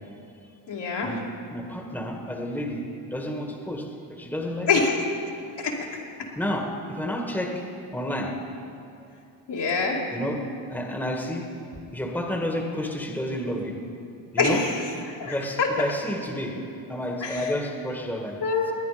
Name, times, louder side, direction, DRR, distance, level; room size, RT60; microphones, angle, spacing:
voice 1, 0.7-1.1 4.7-5.0 5.6-5.8 9.5-10.0 14.4-14.7 15.2-15.7 17.2-17.5 18.4-18.7, left 4 dB, 60° left, -2 dB, 2.6 m, -25 dB
voice 2, 1.5-2.8 3.1-3.9 4.2-4.7 6.4-7.5 7.9-8.3 10.1-10.4 10.7-11.5 11.9-13.8 14.3-14.6 15.2-16.5 16.9-18.4, left 1 dB, 5° left, 1 dB, 1.8 m, -30 dB
20.0 x 9.6 x 5.1 m, 2.6 s
cardioid pair, 70°, 47 cm